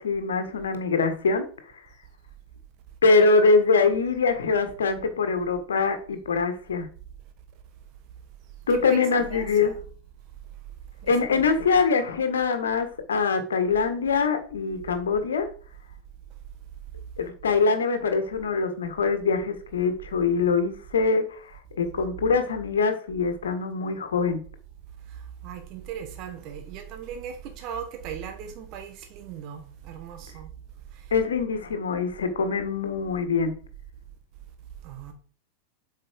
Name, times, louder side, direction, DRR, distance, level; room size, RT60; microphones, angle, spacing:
voice 1, 0.0-1.4 3.0-6.9 8.7-9.7 11.1-15.5 17.2-21.4 21.8-24.4 31.1-33.5, left 4 dB, 65° left, 1.6 m, -23 dB
voice 2, 8.7-9.8 11.0-11.5 25.1-30.5 30.9-31.0 34.8-35.1, right 8 dB, 40° right, 1.5 m, -38 dB
7.7 x 5.7 x 4.8 m
figure-of-eight pair, 90°, 0 cm